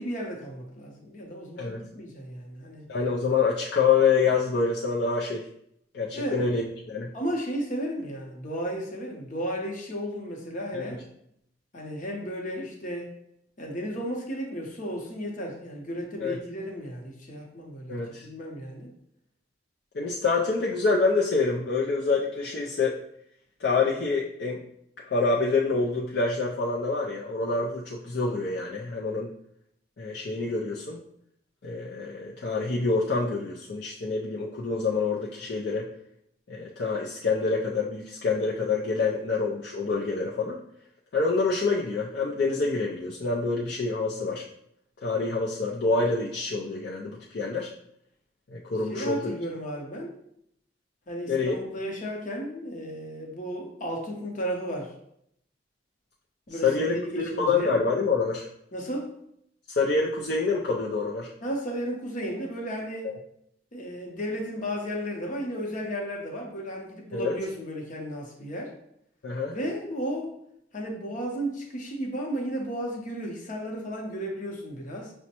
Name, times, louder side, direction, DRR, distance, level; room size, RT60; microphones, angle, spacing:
voice 1, 0.0-2.9 6.1-6.4 7.1-11.0 11.7-13.1 13.6-18.9 48.9-50.2 51.1-54.9 56.5-57.8 58.7-59.2 61.4-63.1 63.7-68.8 69.5-70.3 70.7-75.1, equal, 45° left, 0 dB, 0.8 m, -34 dB
voice 2, 2.9-5.4 5.9-7.1 10.7-11.0 16.2-16.4 17.9-18.3 19.9-23.0 23.6-24.6 25.0-29.3 30.0-31.0 31.6-35.9 36.5-40.6 41.1-44.4 45.0-47.7 48.5-49.4 51.3-51.6 56.6-58.5 59.8-61.3 63.0-63.2 67.1-67.3 69.2-69.6, left 4 dB, 60° left, -4 dB, 0.4 m, -26 dB
6.1 x 2.1 x 2.9 m, 0.73 s
head